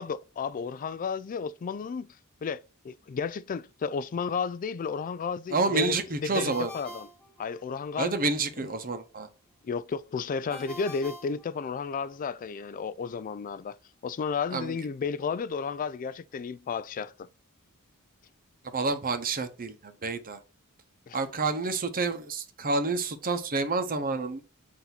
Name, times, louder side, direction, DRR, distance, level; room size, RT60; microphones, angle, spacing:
voice 1, 0.0-7.1 7.4-8.2 8.6-8.7 9.6-13.8 14.0-17.3 21.1-21.2, left 5 dB, 35° left, 0.3 m, -33 dB
voice 2, 5.5-6.7 8.0-9.3 14.5-14.7 18.7-20.4 21.1-24.4, right 3 dB, 40° right, 0.8 m, -29 dB
Ringtone, 6.3-8.0 10.5-12.2, equal, 5° left, 1.1 m, -45 dB
8.0 x 2.8 x 5.8 m
head